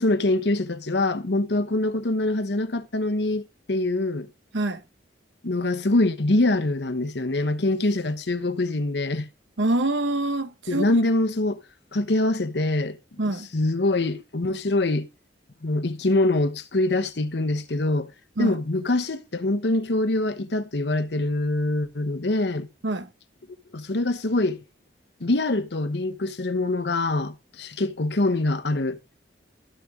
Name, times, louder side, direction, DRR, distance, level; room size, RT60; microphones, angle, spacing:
voice 1, 0.0-3.4 3.7-4.3 5.4-9.3 10.7-11.6 11.9-13.0 13.2-15.1 15.6-18.1 18.4-22.7 23.7-24.6 25.2-29.0, left 2 dB, 65° left, 1.0 m, -24 dB
voice 2, 9.6-10.9 13.2-13.5 18.4-18.5 22.8-23.1, right 2 dB, 85° right, 1.0 m, -25 dB
13.5 x 6.7 x 3.6 m
head